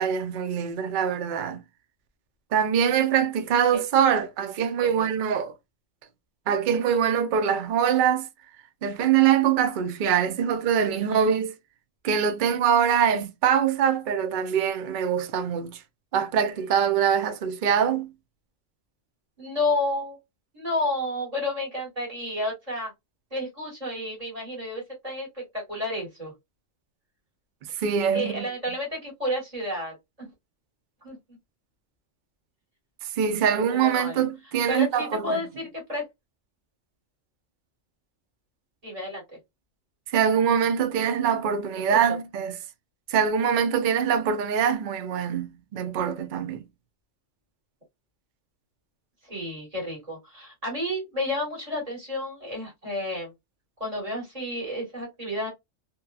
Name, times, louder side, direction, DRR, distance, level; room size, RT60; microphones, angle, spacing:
voice 1, 0.0-1.6 2.5-5.5 6.5-8.3 8.8-11.5 12.0-15.8 16.1-18.1 27.7-28.5 33.0-35.4 40.1-42.6 43.1-46.6, right 8 dB, 55° right, 0.5 m, -23 dB
voice 2, 11.0-11.3 19.4-20.2 20.5-22.9 23.3-26.3 28.1-30.3 31.0-31.2 33.5-34.2 34.7-36.0 38.8-39.4 49.2-53.3 53.8-55.5, left 1 dB, 30° right, 1.5 m, -31 dB
2.8 x 2.2 x 2.3 m
omnidirectional pair, 1.3 m